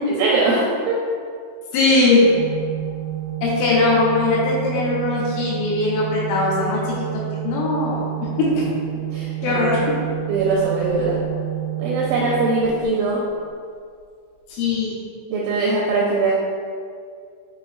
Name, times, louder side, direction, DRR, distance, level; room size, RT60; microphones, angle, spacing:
voice 1, 0.2-1.0 8.5-8.6 9.1-9.7 10.3-11.2 11.8-13.2 15.3-16.3, right 3 dB, 85° right, -4 dB, 2.6 m, -21 dB
voice 2, 1.7-2.3 3.4-8.0 8.4-8.7 9.4-9.8 14.5-15.0, left 3 dB, 80° left, -5 dB, 3.0 m, -20 dB
Organ, 2.2-13.1, right 14 dB, 65° left, 3.4 m, -29 dB
7.2 x 2.6 x 2.4 m, 2.2 s
omnidirectional pair, 5.6 m